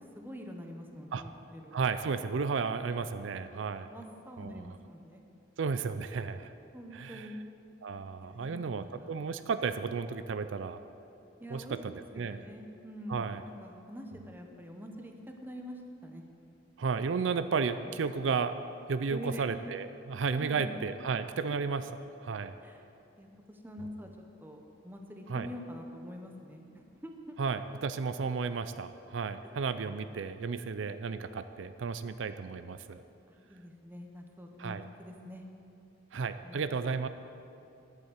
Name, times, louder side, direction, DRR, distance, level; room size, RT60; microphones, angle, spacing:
voice 1, 0.2-1.8 3.9-5.2 6.7-7.4 8.2-9.1 11.4-11.8 12.1-16.2 19.1-19.5 20.3-20.8 21.5-21.6 22.6-22.8 23.2-24.1 24.4-27.4 29.4-29.7 33.3-35.4 36.4-36.8, equal, 10° right, 3 dB, 1.0 m, -45 dB
voice 2, 1.7-3.9 4.4-4.6 5.6-6.5 6.9-7.3 7.8-10.8 11.5-12.4 13.1-13.4 16.8-18.6 18.9-21.9 22.2-22.5 25.3-25.5 27.4-33.0 34.6-34.8 36.1-37.1, right 5 dB, 80° right, 11 dB, 0.5 m, -33 dB
10.5 x 8.2 x 8.1 m, 2.6 s
head